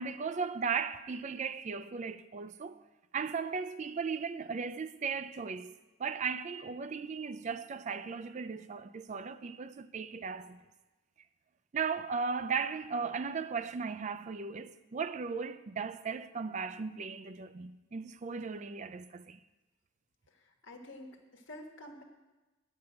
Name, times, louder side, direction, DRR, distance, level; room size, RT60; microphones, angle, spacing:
voice 1, 0.0-2.8 3.1-5.7 6.0-10.6 11.7-19.4, right 5 dB, 35° right, 0.4 m, -36 dB
voice 2, 20.3-22.0, left 1 dB, 65° left, 1.3 m, -49 dB
10.0 x 5.4 x 7.8 m
head